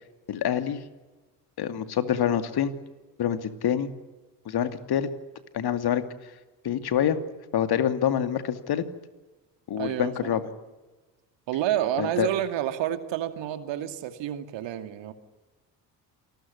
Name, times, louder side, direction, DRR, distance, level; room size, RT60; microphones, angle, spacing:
voice 1, 0.3-0.8 1.6-2.7 3.2-3.9 4.5-5.1 5.5-6.0 6.6-7.2 7.5-8.8 9.7-10.4 12.0-12.3, left 9 dB, 50° left, 10 dB, 2.6 m, -26 dB
voice 2, 9.8-10.3 11.5-15.1, right 11 dB, 60° right, 9 dB, 2.6 m, -29 dB
27.5 x 20.0 x 9.7 m, 1.2 s
hypercardioid pair, 55°, 49 cm